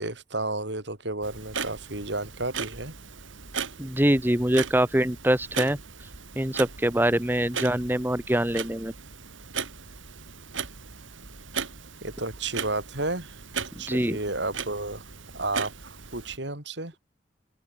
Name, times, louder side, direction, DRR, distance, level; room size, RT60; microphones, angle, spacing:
voice 1, 0.0-2.9 12.0-13.4 13.8-15.0 15.3-16.9, right 2 dB, 70° right, 5.0 m, -32 dB
Clock, 1.2-16.4, right 6 dB, 90° right, 2.9 m, -38 dB
voice 2, 3.8-5.8 6.4-8.9 13.9-14.2, right 1 dB, 10° right, 1.2 m, -24 dB
open air
head